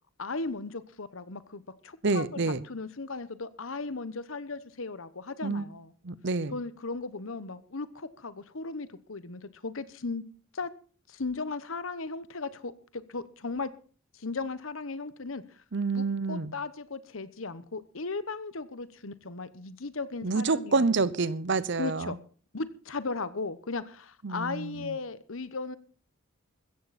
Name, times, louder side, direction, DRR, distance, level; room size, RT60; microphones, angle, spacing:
voice 1, 0.2-5.9 6.5-10.2 10.5-10.7 11.1-13.7 14.1-15.6 15.9-20.9 21.8-22.2 22.5-25.8, left 3 dB, 70° left, 1.1 m, -36 dB
voice 2, 2.0-2.6 5.4-5.7 6.0-6.6 15.7-16.5 20.2-22.2 24.2-24.9, right 3 dB, 60° right, 0.8 m, -28 dB
16.0 x 14.5 x 4.3 m
head